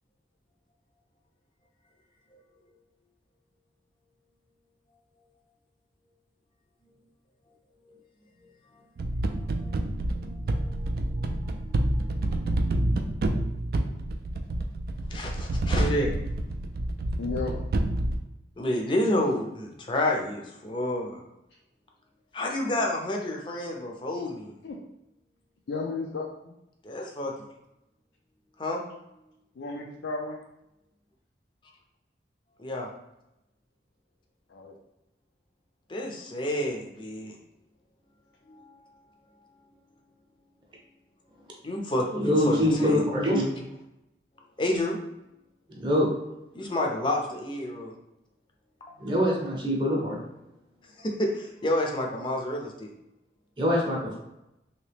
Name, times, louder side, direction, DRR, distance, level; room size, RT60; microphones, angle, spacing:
sound 1, 9.0-18.2, right 1 dB, 55° right, 0.3 m, -28 dB
voice 1, 9.3-9.8 10.2-12.6 15.1-16.1 18.6-21.2 22.3-24.6 26.8-27.3 28.6-28.8 32.6-32.9 35.9-37.4 38.5-38.8 41.6-43.0 44.6-45.0 46.5-47.9 48.8-48.9 51.0-52.9, left 1 dB, 25° left, 0 dB, 0.5 m, -30 dB
voice 2, 17.2-17.6 24.6-24.8 25.7-26.3 29.6-30.4 34.5-34.7, left 3 dB, 80° left, -1 dB, 0.4 m, -33 dB
voice 3, 42.1-43.6 45.7-46.1 49.0-50.2 53.6-54.2, equal, 25° right, -3 dB, 0.7 m, -24 dB
3.1 x 2.8 x 3.3 m, 0.89 s
head